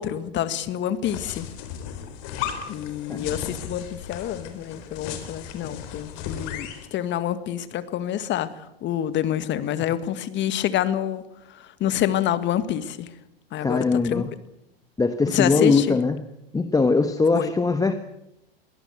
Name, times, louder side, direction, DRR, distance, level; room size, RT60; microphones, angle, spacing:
voice 1, 0.0-1.5 2.7-11.2 11.5-13.1 13.5-14.2 15.3-16.0 17.3-17.5, left 11 dB, 35° left, 13 dB, 1.9 m, -27 dB
sound 1, 1.0-6.9, left 8 dB, 55° left, 4.0 m, -35 dB
voice 2, 13.6-14.3 15.0-16.3 16.5-17.9, left 4 dB, 10° left, 10 dB, 1.2 m, -21 dB
22.5 x 17.0 x 8.0 m, 0.86 s
hypercardioid pair, 95°, 31 cm